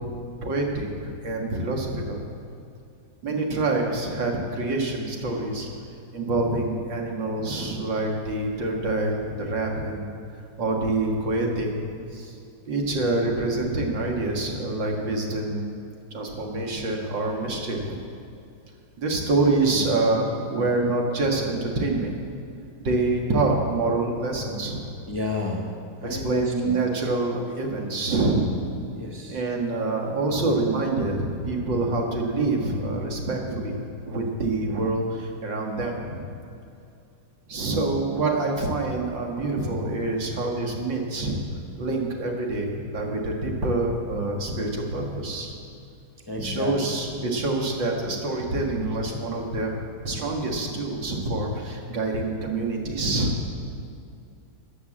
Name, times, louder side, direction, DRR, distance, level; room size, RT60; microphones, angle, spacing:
voice 1, 0.4-2.2 3.2-5.7 6.1-10.1 10.6-11.7 12.1-12.4 12.7-15.7 16.1-18.0 19.0-22.2 22.8-24.9 26.0-28.5 29.3-36.3 37.5-41.4 41.8-45.6 46.4-49.7 50.0-53.4, right 2 dB, 70° right, 0 dB, 2.5 m, -26 dB
voice 2, 25.1-25.7 26.0-26.8 28.9-29.4 46.3-46.7, left 2 dB, 15° left, 0 dB, 1.0 m, -31 dB
13.5 x 9.4 x 7.5 m, 2.5 s
omnidirectional pair, 2.1 m